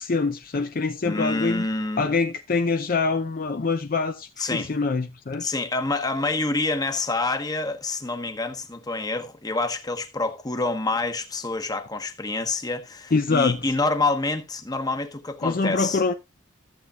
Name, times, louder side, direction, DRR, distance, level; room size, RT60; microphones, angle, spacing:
voice 1, 0.0-1.7 2.0-5.5 13.1-13.6 15.4-16.1, left 4 dB, 45° left, 0.6 m, -24 dB
voice 2, 1.0-2.1 4.4-4.7 5.4-16.0, left 3 dB, 20° left, 1.1 m, -27 dB
14.5 x 7.7 x 2.4 m
head